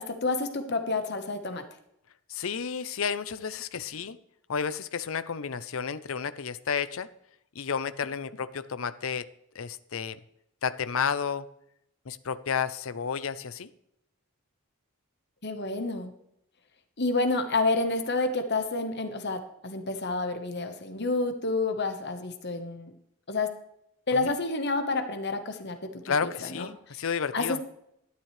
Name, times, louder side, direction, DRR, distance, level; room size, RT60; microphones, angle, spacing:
voice 1, 0.0-1.7 15.4-16.1 17.0-22.9 23.3-23.5 24.1-27.0 27.3-27.6, left 3 dB, 50° left, 7 dB, 1.3 m, -29 dB
voice 2, 2.3-4.2 4.5-7.1 7.5-9.3 9.5-10.2 10.6-11.5 12.1-13.7 26.0-27.6, left 6 dB, 70° left, 14 dB, 0.6 m, -31 dB
12.5 x 10.5 x 3.3 m, 0.77 s
head